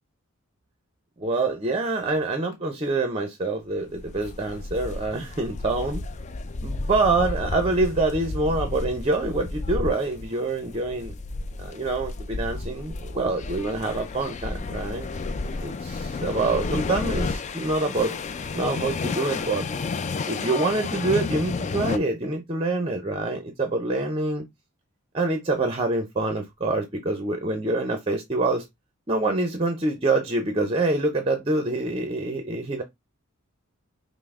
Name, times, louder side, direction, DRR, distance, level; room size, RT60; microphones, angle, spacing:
voice 1, 1.2-6.0 6.6-11.1 11.6-15.1 15.6-18.2 18.5-19.7 20.3-24.4 25.1-28.7 29.1-32.8, right 2 dB, 25° right, 0.6 m, -26 dB
sound 1, 3.9-22.0, left 3 dB, 35° left, 0.4 m, -32 dB
5.4 x 2.0 x 3.5 m
head